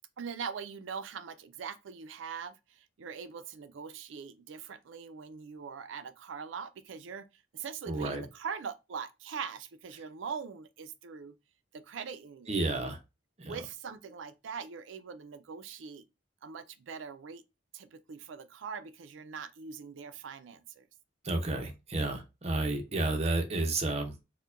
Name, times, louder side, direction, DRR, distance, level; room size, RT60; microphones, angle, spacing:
voice 1, 0.2-11.3 11.7-12.9 13.4-16.0 16.4-17.4 17.7-20.9, right 6 dB, 85° right, 0.4 m, -42 dB
voice 2, 7.9-8.2 12.5-13.0 13.4-13.6 21.2-24.1, right 2 dB, 35° right, 0.7 m, -31 dB
4.4 x 2.1 x 2.4 m
head